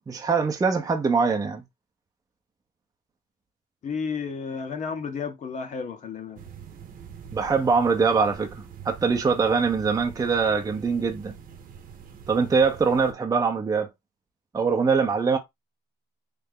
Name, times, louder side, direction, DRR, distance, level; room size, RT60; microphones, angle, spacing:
voice 1, 0.0-1.6 7.3-11.4 12.3-13.9 14.5-15.4, right 5 dB, 20° right, 0.7 m, -23 dB
voice 2, 3.8-6.4, left 5 dB, 45° left, 0.9 m, -32 dB
sound 1, 6.4-13.1, right 7 dB, 55° right, 0.9 m, -44 dB
3.3 x 2.7 x 3.7 m
cardioid pair, 110°, 17 cm